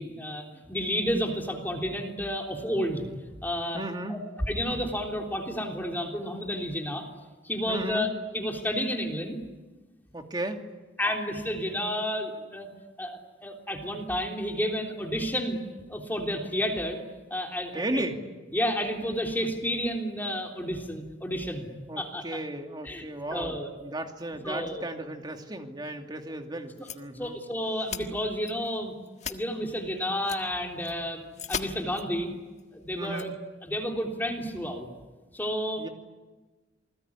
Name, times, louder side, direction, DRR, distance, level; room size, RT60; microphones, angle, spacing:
voice 1, 0.0-3.0 3.4-3.8 4.1-4.2 4.5-7.0 7.4-9.4 11.0-12.7 13.0-15.6 15.9-17.0 17.3-18.1 18.5-21.7 22.0-22.2 22.8-23.0 23.3-23.7 24.4-24.8 26.8-26.9 27.1-29.0 29.3-32.3 32.7-33.3 33.6-34.9 35.3-35.9, equal, 10° left, 1 dB, 3.4 m, -31 dB
voice 2, 3.7-4.2 7.7-8.1 10.1-10.6 17.7-18.2 21.9-27.3 32.9-33.3 35.8-35.9, right 1 dB, 25° right, 4 dB, 2.7 m, -35 dB
sound 1, 26.8-27.0 27.3-27.4 27.9-28.0 28.4-28.7 29.1-29.3 30.2-30.4 30.8-30.9 31.3-31.6 31.9-32.0 32.6-32.7 33.0-33.3, left 7 dB, 40° left, 1.7 m, -35 dB
28.5 x 21.0 x 9.7 m, 1.2 s
head